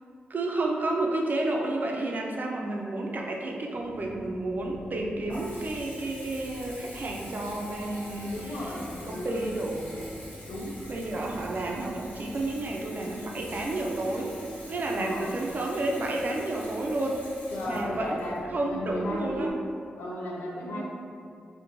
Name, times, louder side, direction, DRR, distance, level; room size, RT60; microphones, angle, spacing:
voice 1, 0.3-8.7 9.0-9.9 10.9-14.3 14.7-17.2 17.7-18.2 18.5-19.5 20.6-20.8, right 2 dB, 50° right, 0 dB, 0.4 m, -31 dB
sound 1, 3.7-14.7, left 1 dB, 30° left, 0.5 m, -49 dB
Water tap faucet / Bathtub (filling or washing) / Trickle dribble, 4.7-19.5, equal, 60° left, 1.0 m, -44 dB
voice 2, 8.3-9.4 10.4-10.8 14.9-15.4 17.5-19.6 20.0-20.8, left 1 dB, 85° left, -3 dB, 0.4 m, -35 dB
2.8 x 2.1 x 2.5 m, 2.4 s
supercardioid pair, 45°, 4 cm